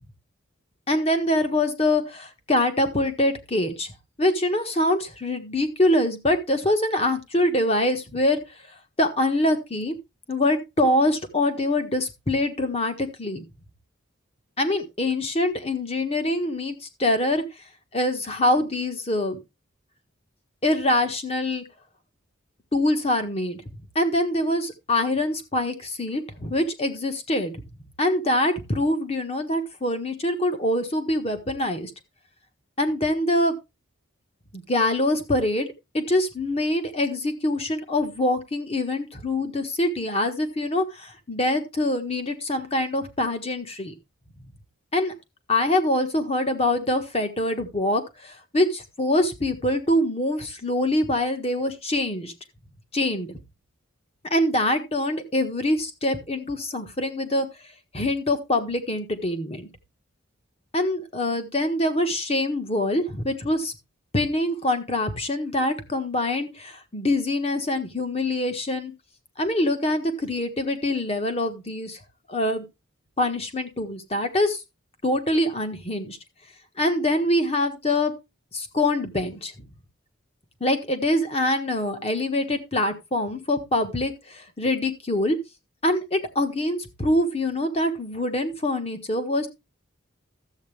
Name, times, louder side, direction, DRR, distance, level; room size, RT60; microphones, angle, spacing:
voice 1, 0.9-3.9 4.2-8.4 9.0-9.9 10.3-13.4 14.6-17.4 17.9-19.4 20.6-21.6 22.7-23.6 23.9-27.6 28.0-31.9 32.8-33.5 34.5-35.7 35.9-43.9 44.9-45.1 45.5-52.3 52.9-53.4 54.3-57.5 57.9-59.7 60.7-63.7 64.1-68.9 69.4-72.0 72.3-72.6 73.2-74.6 75.0-76.2 76.8-78.1 78.5-79.5 80.6-85.4 85.8-89.5, left 1 dB, 30° left, 7 dB, 1.4 m, -24 dB
13.0 x 8.1 x 3.4 m, 0.25 s
head